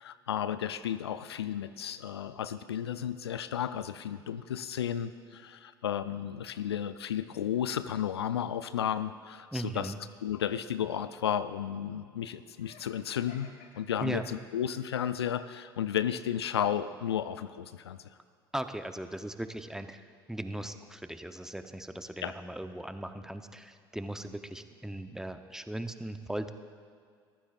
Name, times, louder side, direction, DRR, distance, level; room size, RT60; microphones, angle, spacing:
voice 1, 0.0-9.9 10.2-18.2 22.2-22.3, left 9 dB, 85° left, 14 dB, 0.4 m, -33 dB
voice 2, 9.5-10.0 14.0-14.2 18.5-26.5, right 1 dB, 5° right, 8 dB, 0.9 m, -38 dB
Laughter, 12.5-14.9, left 5 dB, 60° left, 2.7 m, -56 dB
24.5 x 14.5 x 2.5 m, 2.2 s
hypercardioid pair, 65°, 13 cm